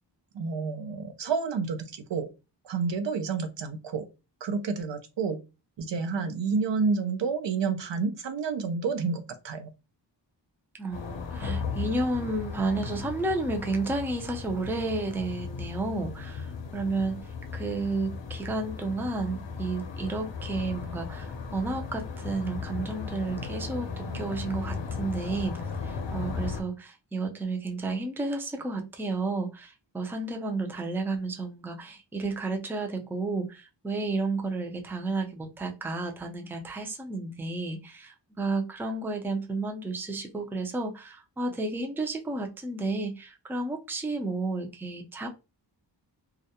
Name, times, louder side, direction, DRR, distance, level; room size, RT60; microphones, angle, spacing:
voice 1, 0.3-2.3 2.6-4.1 4.4-5.4 5.8-9.7, right 5 dB, 70° right, 0.6 m, -29 dB
voice 2, 10.8-17.2 17.5-45.3, right 3 dB, 5° right, 0.4 m, -32 dB
sound 1, 10.9-26.6, left 5 dB, 75° left, 0.6 m, -36 dB
2.3 x 2.1 x 2.7 m
wide cardioid pair, 85°, 45 cm